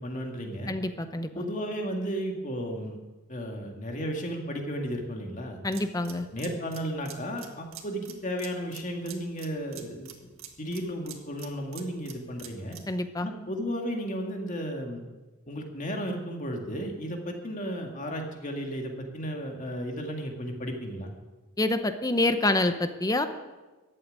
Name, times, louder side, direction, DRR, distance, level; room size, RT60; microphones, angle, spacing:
voice 1, 0.0-0.7 1.3-3.0 3.3-5.6 6.3-10.3 10.6-12.8 13.2-15.0 15.5-21.1, equal, 35° left, 2 dB, 2.1 m, -34 dB
voice 2, 0.7-1.4 5.6-6.3 12.9-13.3 21.6-23.3, left 2 dB, 15° left, 9 dB, 0.7 m, -27 dB
sound 1, 5.7-13.0, right 9 dB, 70° right, 1.7 m, -47 dB
14.5 x 8.7 x 9.4 m, 1.2 s
head